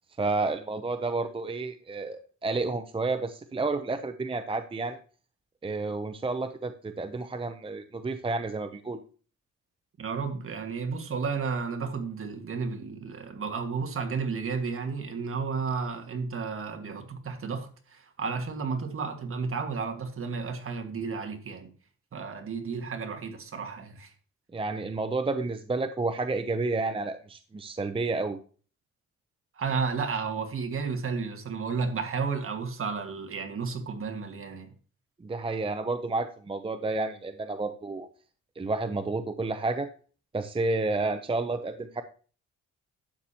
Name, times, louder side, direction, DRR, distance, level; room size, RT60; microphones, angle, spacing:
voice 1, 0.2-5.0 5.6-9.0 24.5-28.4 35.2-38.1 38.6-39.9 40.3-42.0, right 3 dB, 20° right, 0.7 m, -30 dB
voice 2, 10.0-21.7 22.1-24.1 29.6-34.7, right 5 dB, 45° right, 1.8 m, -32 dB
12.0 x 8.5 x 2.9 m
cardioid pair, 90°, 30 cm